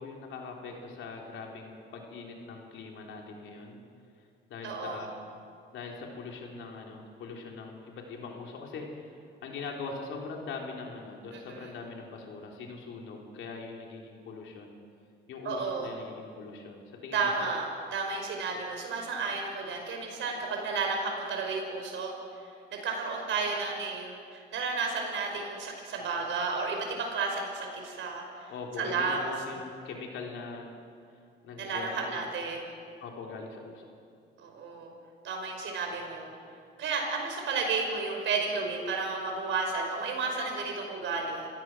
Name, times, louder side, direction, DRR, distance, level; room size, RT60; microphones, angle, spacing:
voice 1, 0.0-3.8 4.5-5.1 5.7-9.0 9.4-14.8 15.3-17.5 28.5-30.7 31.4-32.2 33.0-33.9, left 4 dB, 80° left, 0 dB, 3.8 m, -41 dB
voice 2, 4.6-5.1 11.3-11.7 15.4-15.9 17.1-22.1 22.7-29.2 31.6-32.6 34.4-34.9 35.2-36.3 36.8-41.5, right 4 dB, 75° right, 2 dB, 5.2 m, -32 dB
27.0 x 16.5 x 6.2 m, 2.4 s
cardioid pair, 90°, 20 cm